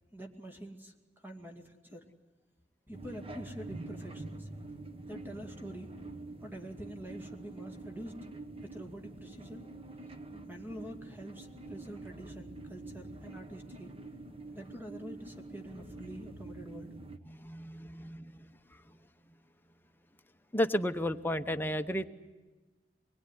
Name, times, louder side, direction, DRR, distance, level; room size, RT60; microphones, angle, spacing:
voice 1, 0.1-2.1 2.9-4.5 5.1-6.0 6.4-8.2 8.6-9.7 10.5-13.9 14.5-16.9, right 1 dB, 10° right, 4 dB, 2.4 m, -46 dB
sound 1, 2.9-17.2, right 2 dB, 35° right, 1.5 m, -46 dB
voice 2, 17.2-18.8 20.5-22.0, equal, 10° left, 7 dB, 0.9 m, -33 dB
24.0 x 21.5 x 9.9 m, 1.3 s
head